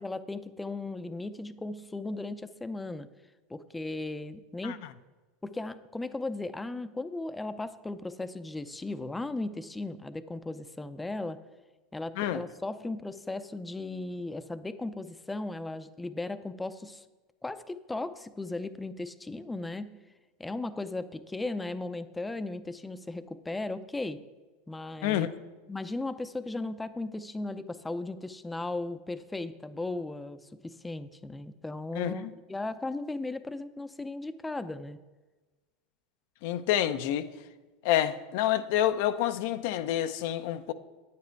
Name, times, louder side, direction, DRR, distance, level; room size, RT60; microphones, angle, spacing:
voice 1, 0.0-3.1 3.5-4.8 5.4-11.4 11.9-17.0 17.4-20.0 20.4-24.2 24.7-25.3 25.7-35.0, left 2 dB, 10° left, 0.5 m, -36 dB
voice 2, 32.0-32.3 36.4-37.3 37.8-40.7, left 12 dB, 70° left, 0.6 m, -28 dB
9.5 x 8.6 x 4.6 m
supercardioid pair, 110°, 0 cm